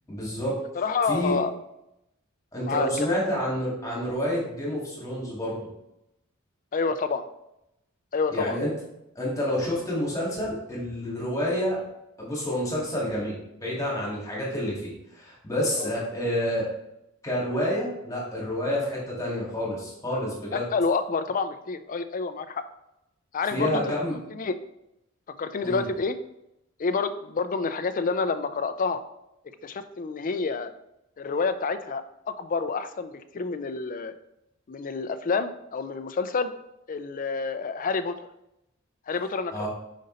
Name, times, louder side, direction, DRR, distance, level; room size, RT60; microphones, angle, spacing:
voice 1, 0.1-0.6 1.0-1.3 2.5-5.7 8.3-8.7 9.2-11.8 12.2-16.7 17.2-20.6 23.5-24.2 25.6-25.8 39.5-39.7, equal, 15° left, -5 dB, 2.2 m, -28 dB
voice 2, 0.7-1.5 2.6-3.1 6.7-7.2 8.1-8.6 15.7-15.9 20.5-22.6 23.3-23.8 24.4-24.6 25.4-26.2 26.8-29.0 29.6-30.7 31.2-34.1 34.7-36.5 36.9-38.2 39.1-39.7, left 4 dB, 40° left, 11 dB, 0.4 m, -28 dB
5.5 x 5.2 x 3.9 m, 0.86 s
head